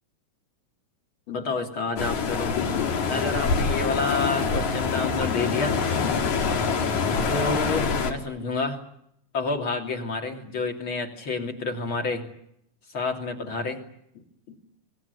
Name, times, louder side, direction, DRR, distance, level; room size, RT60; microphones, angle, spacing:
voice 1, 1.3-2.6 3.1-5.8 7.3-8.8 9.3-12.3 12.9-13.8 14.1-14.6, left 3 dB, 40° left, 3 dB, 3.7 m, -29 dB
sound 1, 2.0-8.1, left 5 dB, 65° left, 3.6 m, -25 dB
25.0 x 20.5 x 9.7 m, 0.75 s
omnidirectional pair, 3.8 m